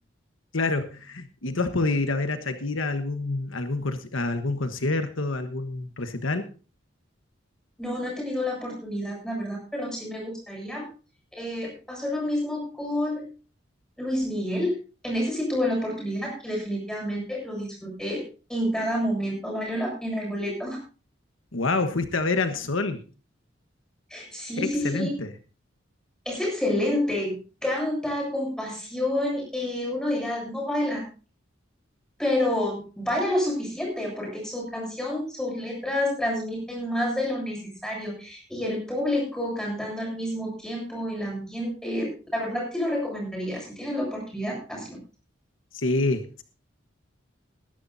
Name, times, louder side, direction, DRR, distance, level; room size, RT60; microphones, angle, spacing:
voice 1, 0.5-6.5 21.5-23.0 24.6-25.3 45.7-46.4, left 3 dB, 85° left, 8 dB, 1.3 m, -27 dB
voice 2, 7.8-10.9 11.3-13.3 14.0-14.8 15.0-18.2 18.5-20.8 24.1-25.1 26.3-27.4 27.6-31.1 32.2-45.0, left 1 dB, 5° left, -1 dB, 7.3 m, -29 dB
20.5 x 11.5 x 2.7 m, 0.36 s
head